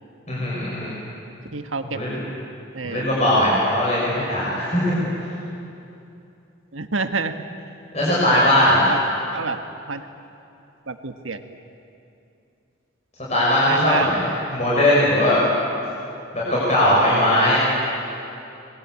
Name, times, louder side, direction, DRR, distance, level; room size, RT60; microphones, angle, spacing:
voice 1, 0.3-0.9 1.8-2.2 2.8-5.1 7.9-8.9 13.3-15.4 16.5-17.6, left 1 dB, 35° left, -7 dB, 6.5 m, -19 dB
voice 2, 1.5-2.0 2.7-3.0 6.7-7.3 8.9-9.0 9.3-9.6 9.9-10.0 10.9-11.4 13.6-14.1, right 4 dB, 85° right, 7 dB, 1.5 m, -27 dB
28.0 x 21.5 x 8.4 m, 2.7 s
head